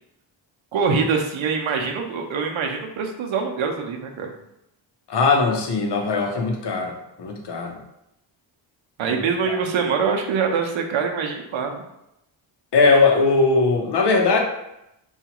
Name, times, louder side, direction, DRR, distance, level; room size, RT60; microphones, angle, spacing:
voice 1, 0.7-4.3 9.0-11.8, right 5 dB, 75° right, 2 dB, 0.7 m, -24 dB
voice 2, 5.1-6.9 7.2-7.8 9.1-9.2 9.5-9.6 12.7-14.4, left 3 dB, 55° left, 2 dB, 0.7 m, -19 dB
4.3 x 2.4 x 2.9 m, 0.84 s
wide cardioid pair, 120°, 48 cm